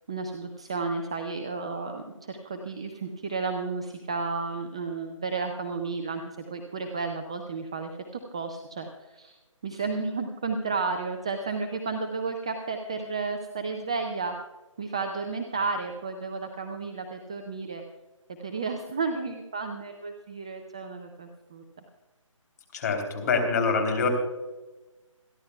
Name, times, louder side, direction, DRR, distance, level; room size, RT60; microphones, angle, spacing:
voice 1, 0.1-7.9 8.3-14.3 14.8-17.8 18.4-21.6, right 4 dB, 10° right, 4 dB, 0.3 m, -32 dB
voice 2, 22.7-24.1, left 4 dB, 30° left, 4 dB, 3.3 m, -25 dB
27.0 x 11.0 x 2.3 m, 1.1 s
figure-of-eight pair, 155°, 17 cm